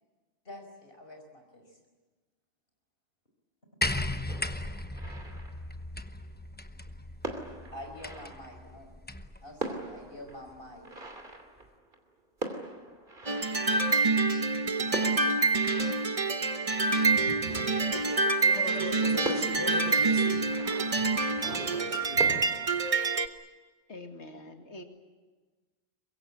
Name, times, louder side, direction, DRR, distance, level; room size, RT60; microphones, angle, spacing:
voice 1, 0.5-1.8 7.7-8.9 9.4-10.9, left 1 dB, 55° left, 4 dB, 5.4 m, -46 dB
sound 1, 3.8-9.4 10.5-10.6, left 1 dB, 10° left, 0.9 m, -36 dB
sound 2, 4.3-6.1 6.9-7.0 7.2-8.9 9.3-9.4 9.6-14.3 14.9-17.5 18.0-18.1 18.5-18.6 19.2-21.9 22.2-23.1, right 2 dB, 50° right, 3.1 m, -41 dB
sound 3, 13.3-23.3, right 3 dB, 35° right, 1.0 m, -26 dB
voice 2, 17.1-20.4 21.0-21.1 21.4-22.4, equal, 85° right, 4 dB, 3.6 m, -39 dB
voice 3, 23.9-24.8, left 1 dB, 80° left, 5 dB, 2.5 m, -45 dB
24.0 x 22.5 x 8.7 m, 1.3 s
omnidirectional pair, 1.1 m